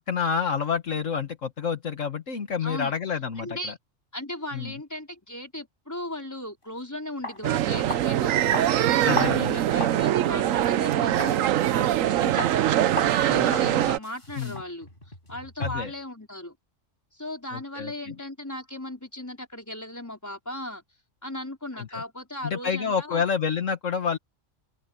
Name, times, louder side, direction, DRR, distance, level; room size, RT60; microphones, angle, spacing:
voice 1, 0.1-3.7 4.5-4.7 9.0-9.6 13.3-13.8 14.4-14.6 15.6-15.9 17.5-17.9 21.8-21.9 22.4-24.2, left 6 dB, 70° left, 1.8 m, -28 dB
voice 2, 2.6-2.9 3.4-3.8 4.1-8.3 9.1-14.9 15.3-16.6 17.1-20.8 21.2-23.2, left 1 dB, 10° left, 4.6 m, -37 dB
sound 1, 6.7-6.8 7.2-7.4 7.9-8.2 8.5-10.0 10.4-10.6 11.2-11.4 11.8-12.1 12.4-12.6 13.0-13.2 13.5-13.7 14.0-15.9, left 1 dB, 40° left, 7.9 m, -35 dB
sound 2, 7.4-14.0, right 12 dB, 80° right, 1.0 m, -23 dB
open air
omnidirectional pair, 1.4 m